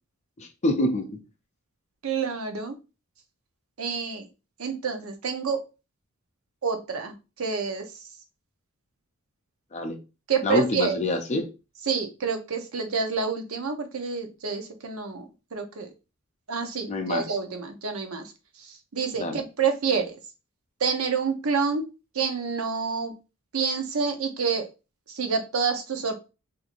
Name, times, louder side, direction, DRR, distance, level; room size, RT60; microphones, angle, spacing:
voice 1, 0.4-1.1 9.7-10.0 10.4-11.5 16.9-17.4 19.2-19.4, left 1 dB, 30° left, 0.5 m, -26 dB
voice 2, 2.0-2.8 3.8-4.3 4.6-5.6 6.6-7.9 10.3-11.0 11.9-15.2 15.5-15.9 16.5-18.3 18.6-20.2 20.8-21.8 22.1-23.1 23.5-24.7 25.1-26.1, right 5 dB, 70° right, 0.7 m, -28 dB
4.4 x 2.6 x 2.5 m
head